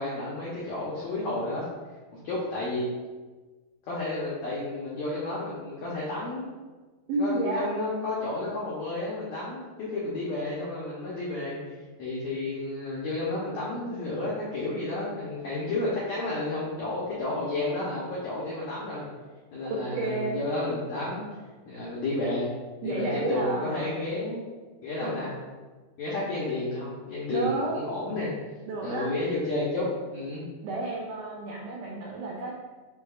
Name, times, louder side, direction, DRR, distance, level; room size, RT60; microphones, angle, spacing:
voice 1, 0.0-1.6 2.1-2.9 3.9-6.4 7.2-11.6 12.0-19.1 19.5-21.2 21.7-22.5 22.8-24.4 24.8-25.3 26.0-28.3 28.8-30.4, left 2 dB, 85° left, -7 dB, 1.6 m, -31 dB
voice 2, 7.1-7.7 19.7-20.4 22.8-24.1 25.0-25.3 27.3-27.8 28.7-29.1 30.6-32.5, right 2 dB, 85° right, -3 dB, 1.8 m, -31 dB
8.2 x 2.7 x 2.4 m, 1.3 s
omnidirectional pair, 4.3 m